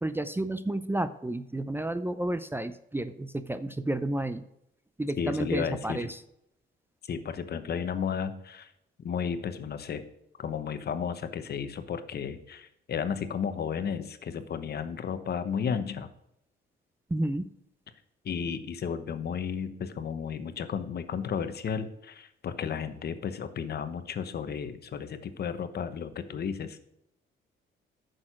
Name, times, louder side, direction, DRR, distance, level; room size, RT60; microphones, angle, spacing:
voice 1, 0.0-4.4 5.0-6.2 17.1-17.5, right 1 dB, 10° right, 12 dB, 0.6 m, -31 dB
voice 2, 5.2-6.1 7.1-8.7 9.0-10.0 10.4-16.1 18.2-26.8, left 7 dB, 55° left, 10 dB, 1.1 m, -33 dB
9.6 x 6.5 x 5.9 m, 0.80 s
cardioid pair, 90°, 20 cm